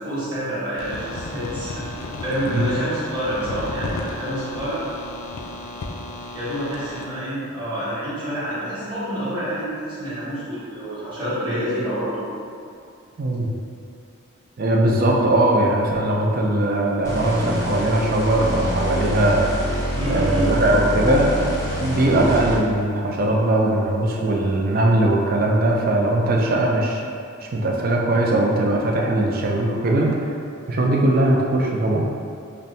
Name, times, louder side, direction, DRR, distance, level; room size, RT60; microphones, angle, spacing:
voice 1, 0.0-4.8 6.3-12.2 19.9-20.5, equal, 20° right, -12 dB, 1.3 m, -28 dB
sound 1, 0.8-7.0, left 2 dB, 80° left, 0.4 m, -33 dB
voice 2, 13.2-13.5 14.6-19.8 20.1-27.0 27.4-30.2 30.7-32.1, right 1 dB, 45° right, -1 dB, 0.4 m, -20 dB
sound 2, 17.0-22.8, equal, 15° left, 0.6 m, -26 dB
5.6 x 2.1 x 2.6 m, 2.5 s
head